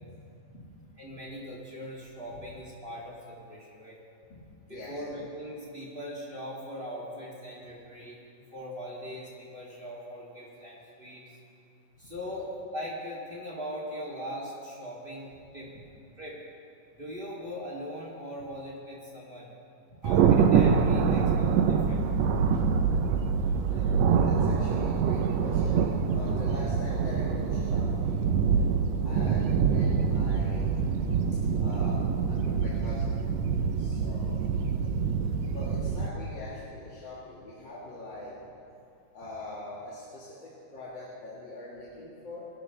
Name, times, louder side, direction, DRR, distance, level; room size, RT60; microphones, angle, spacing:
voice 1, 1.0-4.0 4.7-8.2 8.5-11.2 12.0-15.7 16.2-16.4 16.9-19.5 20.0-21.3 21.9-22.0 34.3-34.4, equal, 15° right, -5 dB, 2.6 m, -40 dB
voice 2, 4.7-5.0 12.3-12.4 15.7-15.8 21.0-21.4 23.7-24.0 24.3-28.6 29.0-30.7 31.6-33.2 33.8-34.4 35.5-38.4 39.1-42.5, left 1 dB, 40° left, -8 dB, 2.3 m, -43 dB
Thunder, 20.0-36.1, right 6 dB, 85° right, 1.5 m, -25 dB
22.0 x 12.0 x 3.4 m, 2.5 s
omnidirectional pair, 4.0 m